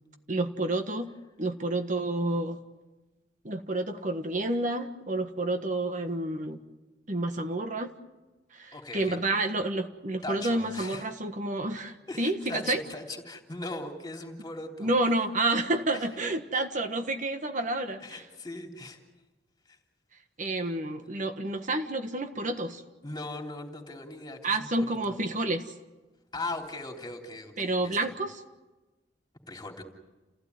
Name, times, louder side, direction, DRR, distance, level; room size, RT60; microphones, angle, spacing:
voice 1, 0.3-1.1 1.4-2.6 3.4-6.6 7.1-7.9 8.5-12.8 14.8-18.2 20.4-22.8 24.4-25.7 27.6-28.4, right 2 dB, 45° right, 6 dB, 1.5 m, -29 dB
voice 2, 8.7-9.2 10.2-11.1 12.1-14.9 15.9-16.1 18.0-19.0 19.7-19.8 23.0-25.1 26.3-28.1 29.5-29.8, left 2 dB, 25° left, 2 dB, 3.4 m, -39 dB
29.5 x 16.0 x 9.6 m, 1.1 s
head